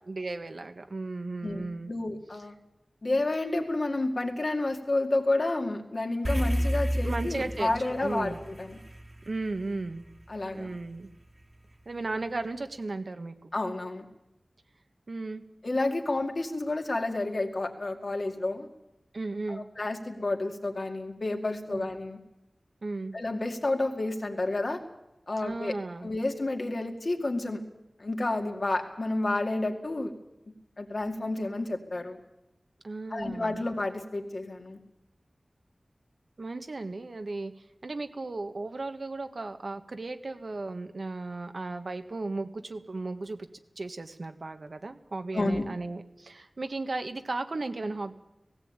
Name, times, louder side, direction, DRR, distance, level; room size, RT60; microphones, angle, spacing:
voice 1, 0.0-1.9 7.0-8.4 9.2-10.1 10.5-11.1 11.8-13.3 15.1-15.4 19.1-19.6 21.7-21.9 22.8-23.1 25.4-26.1 32.8-33.6 36.4-37.5 37.8-43.5 43.8-48.1, right 3 dB, 65° right, 7 dB, 1.5 m, -35 dB
voice 2, 1.4-2.5 3.0-8.8 10.3-10.7 13.5-14.1 15.6-18.7 19.5-22.2 23.1-24.8 25.3-25.7 26.0-27.6 28.0-30.1 30.8-32.2 33.1-34.8 45.3-45.6, left 2 dB, 55° left, 3 dB, 2.4 m, -30 dB
sound 1, 6.2-10.8, equal, 40° right, 2.0 m, -31 dB
17.0 x 17.0 x 9.0 m, 0.93 s
wide cardioid pair, 75°, 0 cm